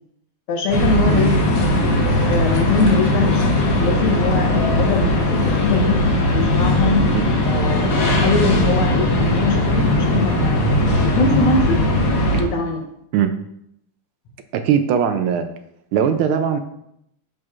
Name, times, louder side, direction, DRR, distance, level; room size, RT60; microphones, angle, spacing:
voice 1, 0.5-1.6 2.3-6.0 6.3-7.1 7.4-10.6 11.0-11.9 12.4-12.8, left 3 dB, 80° left, 1 dB, 1.8 m, -22 dB
sound 1, 0.7-12.4, left 1 dB, 50° left, 1.6 m, -18 dB
voice 2, 14.5-15.4 15.9-16.6, right 8 dB, 80° right, 8 dB, 1.4 m, -19 dB
12.0 x 4.5 x 2.4 m, 0.76 s
omnidirectional pair, 2.4 m